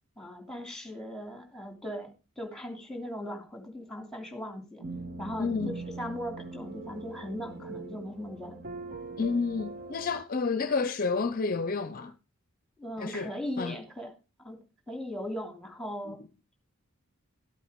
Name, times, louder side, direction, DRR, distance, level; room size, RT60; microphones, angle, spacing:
voice 1, 0.2-4.8 5.2-5.5 5.8-8.6 12.8-14.1 14.4-14.6 14.9-16.2, left 1 dB, 5° left, 2.9 m, -38 dB
sound 1, 4.8-10.2, right 3 dB, 40° right, 1.1 m, -41 dB
voice 2, 5.4-5.7 9.2-12.2 13.0-13.8 16.1-16.2, left 4 dB, 40° left, 0.6 m, -30 dB
13.0 x 8.3 x 5.1 m
head